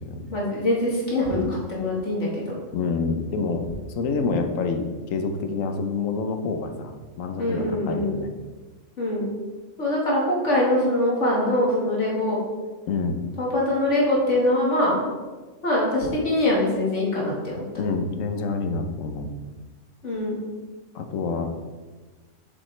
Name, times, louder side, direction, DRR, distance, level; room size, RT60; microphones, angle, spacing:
voice 1, 0.3-2.6 7.4-8.2 9.0-9.3 9.8-12.4 13.4-14.9 15.6-17.6 20.0-20.4, left 1 dB, 65° left, -4 dB, 2.0 m, -23 dB
voice 2, 2.7-3.7 3.9-8.3 12.9-13.2 17.8-19.3 20.9-21.5, left 4 dB, 85° left, 5 dB, 1.2 m, -27 dB
7.4 x 6.7 x 3.2 m, 1.3 s
omnidirectional pair, 1.3 m